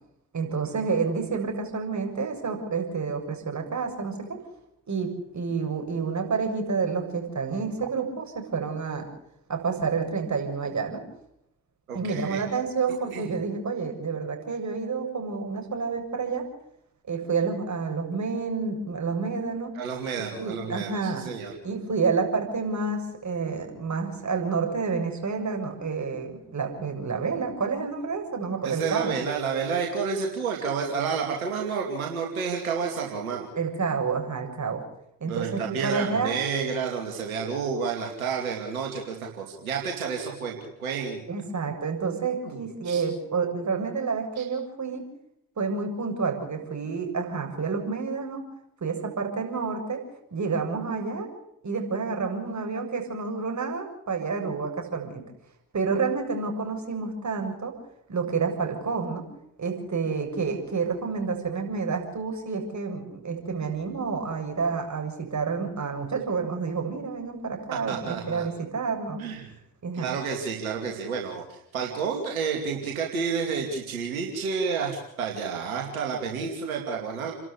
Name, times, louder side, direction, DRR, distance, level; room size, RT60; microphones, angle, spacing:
voice 1, 0.3-4.4 4.9-9.1 9.5-11.0 11.9-16.5 17.1-19.7 20.4-21.3 21.6-29.2 33.6-34.8 35.2-36.4 41.3-45.1 45.6-48.5 48.8-50.0 50.3-51.3 51.6-55.2 55.7-57.8 58.1-59.2 59.6-69.2 69.8-70.1, right 5 dB, 45° right, 3 dB, 7.4 m, -29 dB
voice 2, 11.9-12.4 13.1-13.2 19.7-21.5 28.6-33.5 35.2-41.3 42.4-42.6 42.8-43.0 67.9-68.5 69.2-69.5 69.9-77.3, right 6 dB, 90° right, 1 dB, 2.7 m, -30 dB
29.5 x 12.5 x 8.3 m, 0.80 s
hypercardioid pair, 45°, 41 cm